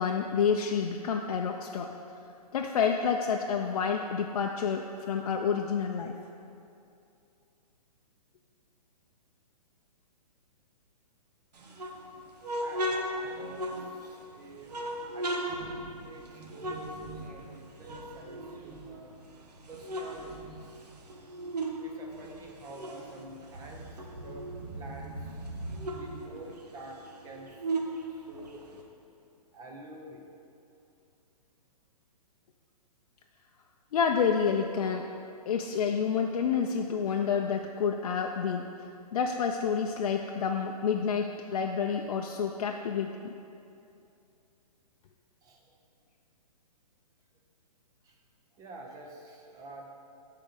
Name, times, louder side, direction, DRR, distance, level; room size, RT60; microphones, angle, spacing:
voice 1, 0.0-1.9 2.5-6.2 33.9-35.1 35.5-38.7 39.1-43.3, left 6 dB, 65° left, 2 dB, 0.5 m, -29 dB
sound 1, 11.5-14.2 14.7-17.6 17.8-19.2 19.6-21.8 22.1-24.7 25.0-25.1 25.4-28.8, right 1 dB, 85° right, 1.0 m, -37 dB
Thunder, 12.5-26.2, right 2 dB, 50° right, 1.7 m, -46 dB
voice 2, 12.6-14.7 15.1-15.4 16.0-19.1 19.7-20.6 21.8-23.9 24.2-24.5 24.7-25.2 25.9-29.0 29.5-30.3 45.4-45.6 48.0-48.1 48.6-49.9, right 1 dB, 15° right, 1 dB, 0.6 m, -48 dB
7.3 x 4.5 x 5.2 m, 2.6 s
hypercardioid pair, 140°, 20 cm